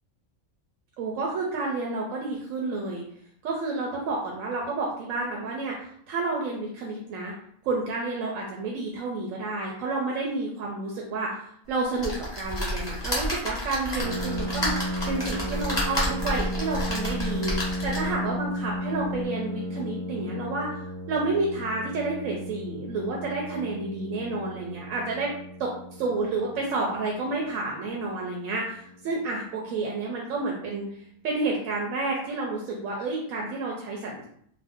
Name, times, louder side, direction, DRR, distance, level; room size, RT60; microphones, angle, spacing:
voice 1, 1.0-3.0 3.4-7.3 7.6-17.5 17.8-25.3 25.6-30.9 31.2-34.2, right 3 dB, 85° right, -2 dB, 1.0 m, -30 dB
sound 1, 12.0-18.2 18.8-18.9 19.1-19.2, left 1 dB, 25° left, 0.7 m, -30 dB
Piano, 14.0-29.4, equal, 60° right, 0.8 m, -35 dB
2.6 x 2.2 x 3.4 m, 0.65 s
omnidirectional pair, 1.3 m